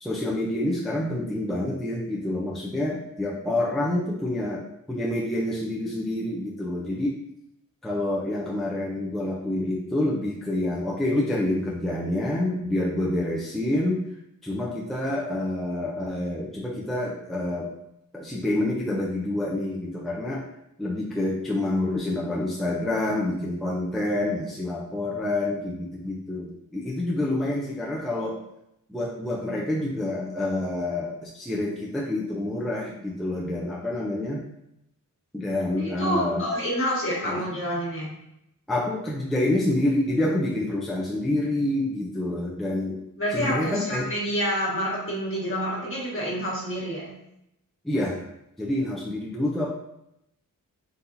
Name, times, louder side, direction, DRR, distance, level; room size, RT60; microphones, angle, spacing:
voice 1, 0.0-7.2 7.8-14.0 14.4-17.7 18.1-20.4 20.8-28.4 28.9-34.4 35.3-36.4 37.2-37.4 38.7-43.0 43.3-44.1 47.8-48.2 48.6-49.7, left 1 dB, ahead, -4 dB, 0.5 m, -27 dB
voice 2, 35.8-38.1 43.2-47.1, equal, 40° left, -5 dB, 1.5 m, -28 dB
4.2 x 4.0 x 2.6 m, 0.80 s
wide cardioid pair, 165°, 33 cm